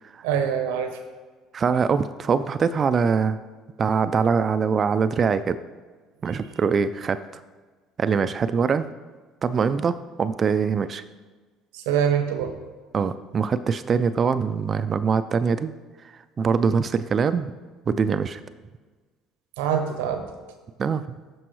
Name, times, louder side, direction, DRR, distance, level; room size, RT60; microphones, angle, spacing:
voice 1, 0.2-1.0 11.7-12.5 19.6-20.2, right 8 dB, 85° right, 7 dB, 0.8 m, -24 dB
voice 2, 1.5-3.4 3.8-5.6 6.2-7.2 8.0-8.9 9.4-11.0 12.9-15.7 16.0-17.5 17.9-18.4 20.8-21.0, right 6 dB, 40° right, 12 dB, 0.3 m, -23 dB
12.5 x 4.5 x 3.1 m, 1.4 s
hypercardioid pair, 75°, 0 cm